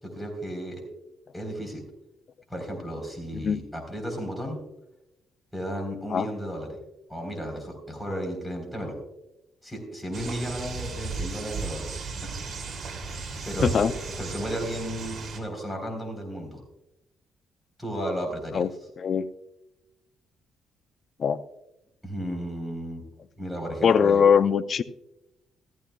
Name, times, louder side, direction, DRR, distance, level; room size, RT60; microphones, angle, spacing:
voice 1, 0.0-0.8 1.3-1.8 2.5-4.6 5.5-6.7 7.1-9.0 9.6-11.9 13.4-13.8 14.2-16.6 17.8-18.7 22.0-23.0 23.4-24.3, equal, 5° left, 3.8 m, -34 dB
sound 1, 10.1-15.4, right 4 dB, 50° right, 2.7 m, -35 dB
voice 2, 13.6-13.9 18.5-18.7 19.0-19.3 21.2-21.4 23.8-24.8, left 7 dB, 50° left, 0.5 m, -21 dB
15.0 x 14.0 x 2.3 m
cardioid pair, 90°, 0 cm